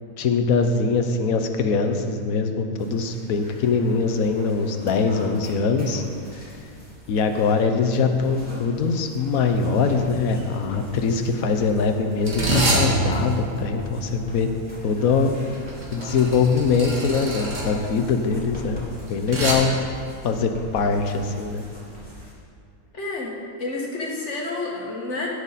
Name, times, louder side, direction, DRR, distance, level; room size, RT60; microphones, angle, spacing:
voice 1, 0.2-6.0 7.1-14.5 14.8-15.3 15.9-18.8 19.1-19.8 20.2-21.6, left 4 dB, 75° left, 6 dB, 1.3 m, -22 dB
sound 1, 2.8-22.3, equal, 5° left, 2.7 m, -42 dB
sound 2, 9.5-9.7 9.9-10.3 11.0-19.5, right 1 dB, 55° right, 2.0 m, -27 dB
voice 2, 22.9-25.3, left 2 dB, 55° left, -2 dB, 2.0 m, -30 dB
17.5 x 6.6 x 4.1 m, 2.4 s
omnidirectional pair, 1.5 m